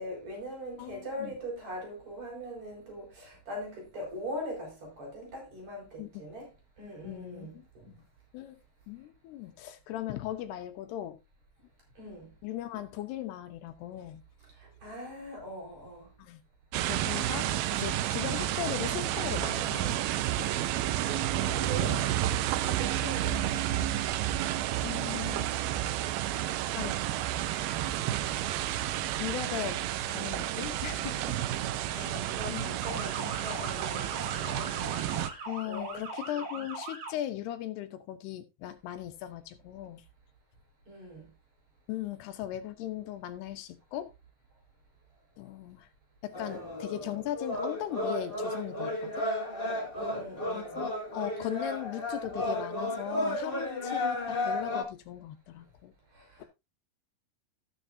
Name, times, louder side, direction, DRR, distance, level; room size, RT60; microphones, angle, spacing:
voice 1, 0.0-6.5 6.8-7.9 12.0-12.3 14.8-16.1 21.0-22.1 22.6-23.9 31.9-35.0 35.3-36.0 40.9-41.3 46.5-46.6 49.9-50.9 56.1-56.5, equal, 40° right, 6.7 m, -41 dB
voice 2, 0.8-1.4 6.0-6.3 7.0-8.1 8.3-8.6 8.9-11.2 12.4-14.2 16.2-16.4 16.8-20.0 23.3-23.9 24.8-25.5 26.7-27.0 29.2-29.8 30.1-31.4 31.9-32.7 33.2-33.5 35.5-40.0 41.9-44.1 45.4-45.9 46.2-49.3 50.5-55.9, left 12 dB, 80° left, 3.0 m, -38 dB
sound 1, 16.7-35.3, right 12 dB, 75° right, 2.4 m, -31 dB
Motor vehicle (road) / Siren, 32.8-37.1, right 2 dB, 60° right, 4.2 m, -40 dB
sound 2, 46.3-54.8, left 1 dB, 20° left, 1.9 m, -33 dB
18.0 x 6.5 x 2.6 m
omnidirectional pair, 4.7 m